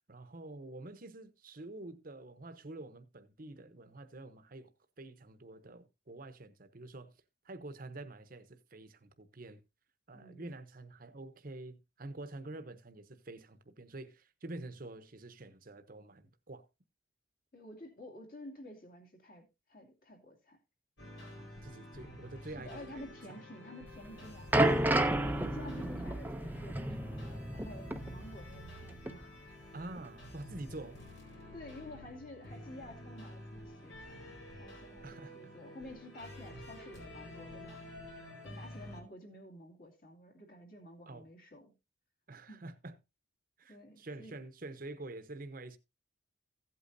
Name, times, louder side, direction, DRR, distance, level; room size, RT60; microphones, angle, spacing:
voice 1, 0.1-7.1 7.4-9.6 10.1-16.6 21.4-23.0 23.3-23.4 29.7-31.0 35.0-35.3 41.1-41.2 42.3-43.0 43.6-45.8, right 2 dB, 45° right, 1.0 m, -47 dB
voice 2, 10.1-10.6 17.5-20.6 22.4-24.7 25.2-29.3 30.7-30.9 31.5-37.8 38.4-41.7 42.5-42.6 43.7-44.4, left 1 dB, 45° left, 2.5 m, -51 dB
sound 1, 21.0-39.0, left 1 dB, 80° left, 4.5 m, -49 dB
sound 2, 23.9-28.8 29.1-29.2 30.0-30.1, right 1 dB, 10° right, 0.6 m, -32 dB
15.5 x 8.4 x 2.7 m
head